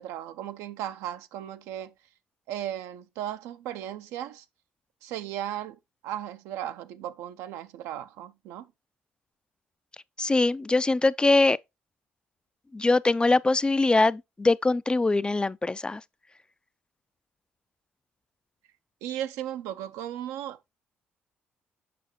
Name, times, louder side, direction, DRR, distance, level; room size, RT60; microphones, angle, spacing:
voice 1, 0.0-1.9 2.5-4.4 5.0-5.8 6.0-8.7 19.0-20.7, right 11 dB, 75° right, 0.5 m, -36 dB
voice 2, 10.2-11.6 12.7-16.0, left 2 dB, 20° left, 0.3 m, -22 dB
6.8 x 5.3 x 3.0 m
hypercardioid pair, 55°, 5 cm